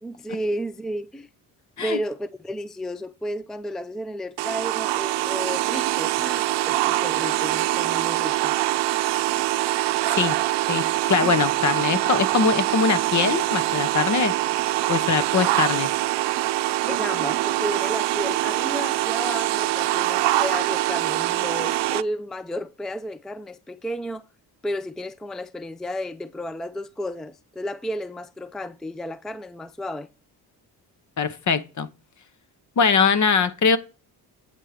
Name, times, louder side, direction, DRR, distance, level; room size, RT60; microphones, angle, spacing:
voice 1, 0.0-1.3 1.8-8.5 16.9-24.3 24.6-30.1, equal, ahead, 0.4 m, -32 dB
sound 1, 4.4-22.0, right 16 dB, 85° right, 0.6 m, -24 dB
voice 2, 10.7-14.3 14.9-15.9 31.2-31.9 32.8-33.8, left 5 dB, 45° left, 1.0 m, -22 dB
8.6 x 4.5 x 6.6 m
cardioid pair, 105°, 41 cm